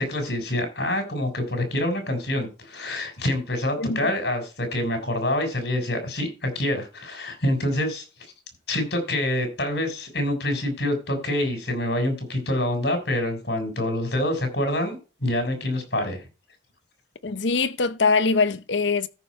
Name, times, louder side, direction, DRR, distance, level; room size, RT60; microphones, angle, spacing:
voice 1, 0.0-8.0 8.7-16.2, left 1 dB, 60° left, 4.0 m, -26 dB
voice 2, 17.2-19.1, left 4 dB, 80° left, 0.7 m, -22 dB
14.0 x 5.3 x 4.3 m
head